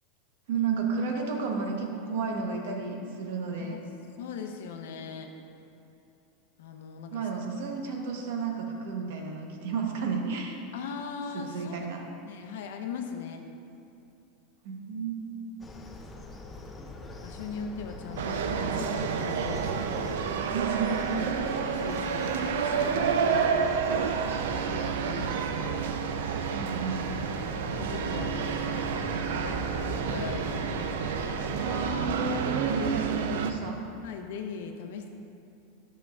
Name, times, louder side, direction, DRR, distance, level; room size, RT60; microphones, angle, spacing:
voice 1, 0.5-3.8 7.1-10.6 11.3-12.0 14.6-15.2 20.5-21.4 26.5-27.0 31.5-33.8, right 5 dB, 65° right, 2 dB, 0.9 m, -32 dB
voice 2, 4.2-5.3 6.6-7.3 10.7-11.8 12.2-13.5 17.2-20.3 21.6-23.6 24.5-25.8 27.6-30.6 34.0-35.1, left 6 dB, 75° left, 4 dB, 0.6 m, -40 dB
sound 1, 15.6-32.1, left 1 dB, 10° left, 0.4 m, -42 dB
sound 2, 18.2-33.5, right 6 dB, 90° right, 0.4 m, -29 dB
9.2 x 6.0 x 2.3 m, 2.7 s
supercardioid pair, 170°, 0 cm